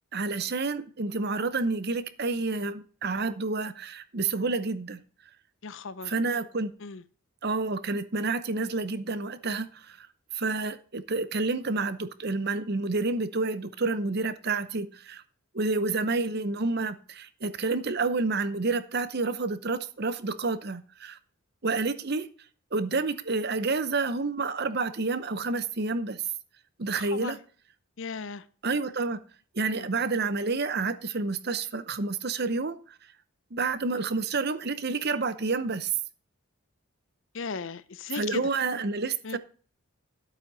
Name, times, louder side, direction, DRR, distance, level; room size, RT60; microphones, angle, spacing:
voice 1, 0.1-5.0 6.1-6.7 7.4-10.1 10.3-15.2 15.5-21.2 21.6-22.3 22.7-26.2 26.8-27.4 28.6-29.2 29.5-32.8 33.5-35.9 38.1-39.4, right 3 dB, 45° right, 0.8 m, -29 dB
voice 2, 5.6-6.1 6.8-7.0 26.9-27.4 28.0-28.4 29.7-29.9 37.3-38.4 39.2-39.4, left 5 dB, 60° left, 0.6 m, -37 dB
11.5 x 8.5 x 4.1 m
head